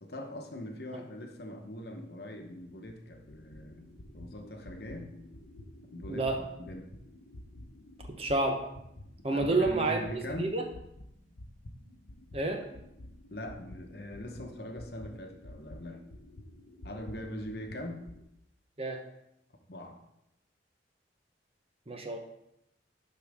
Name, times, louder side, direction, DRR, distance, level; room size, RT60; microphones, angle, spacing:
voice 1, 0.0-3.9 4.1-5.1 5.9-6.9 9.3-10.5 13.3-16.0 16.8-18.0 19.7-20.0, left 1 dB, 55° left, 3 dB, 1.0 m, -42 dB
sound 1, 2.6-10.4 10.7-18.2, left 1 dB, 85° left, 0.9 m, -50 dB
voice 2, 6.1-6.4 8.2-8.6 9.2-10.6 12.3-12.6 18.8-19.0 21.9-22.2, right 2 dB, 30° right, 3 dB, 0.8 m, -29 dB
11.5 x 4.7 x 3.5 m, 0.83 s
head